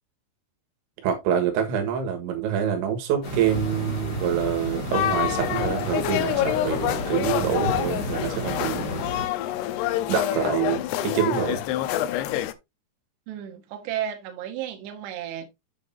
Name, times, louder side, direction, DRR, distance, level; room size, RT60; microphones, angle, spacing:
voice 1, 1.0-9.0 10.1-11.6, right 9 dB, 90° right, 3.9 m, -26 dB
sound 1, 3.2-9.2, left 1 dB, 35° left, 1.6 m, -32 dB
sound 2, 4.9-12.5, left 13 dB, 80° left, 2.6 m, -27 dB
voice 2, 13.3-15.5, right 10 dB, 75° right, 3.4 m, -33 dB
8.1 x 8.0 x 2.7 m
omnidirectional pair, 5.2 m